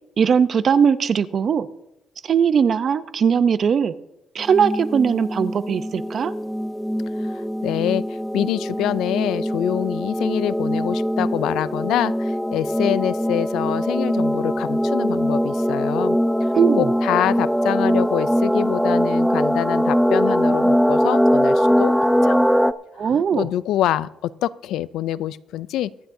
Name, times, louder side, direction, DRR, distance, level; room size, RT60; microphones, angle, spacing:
voice 1, 0.2-1.7 2.2-3.9 4.3-6.3 16.5-16.9 23.0-23.5, right 7 dB, 55° right, 14 dB, 0.6 m, -19 dB
sound 1, 4.4-22.7, equal, ahead, 0.5 m, -21 dB
voice 2, 7.2-8.0 8.3-16.5 16.7-22.0 22.2-22.4 23.0-25.9, left 12 dB, 85° left, 18 dB, 0.4 m, -25 dB
24.0 x 10.0 x 2.7 m, 0.90 s
cardioid pair, 90°, 0 cm